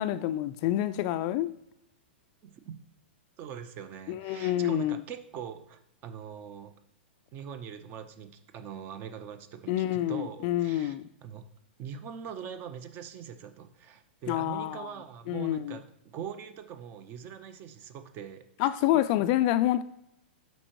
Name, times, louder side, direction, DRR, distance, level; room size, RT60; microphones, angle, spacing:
voice 1, 0.0-1.6 4.1-5.0 9.7-11.0 14.3-14.9 15.3-15.8 18.6-19.8, left 13 dB, 40° left, 0.4 m, -27 dB
voice 2, 2.4-2.8 3.4-6.7 7.3-11.0 11.2-11.4 11.8-15.9 16.1-18.7, right 8 dB, 35° right, 0.8 m, -42 dB
12.0 x 4.5 x 3.0 m
hypercardioid pair, 125°, 6 cm